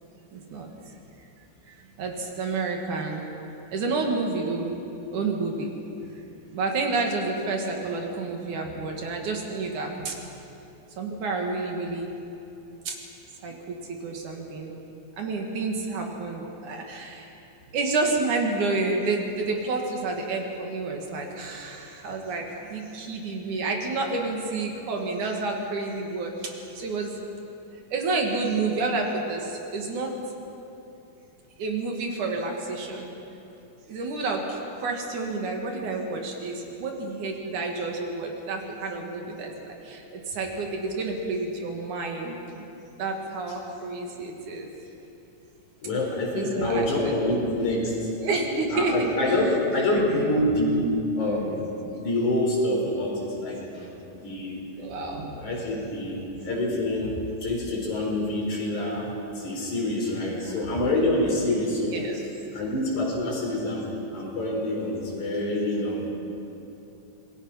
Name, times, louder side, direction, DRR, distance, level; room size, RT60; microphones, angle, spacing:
voice 1, 0.3-0.7 1.8-3.4 3.7-4.8 5.1-5.8 6.5-10.2 11.0-12.1 12.9-13.0 13.4-14.8 15.2-17.3 17.7-27.3 27.9-30.1 31.6-33.1 33.9-42.7 43.0-44.7 46.3-46.9 47.2-47.3 48.2-49.3 54.8-55.4 60.2-60.6 61.9-62.2, right 3 dB, 70° right, 1 dB, 3.5 m, -29 dB
voice 2, 45.8-48.1 48.7-50.9 51.2-51.7 52.0-54.6 55.3-62.0 62.5-66.1, left 1 dB, 65° left, -2 dB, 5.9 m, -26 dB
26.5 x 20.5 x 5.8 m, 2.9 s
omnidirectional pair, 3.7 m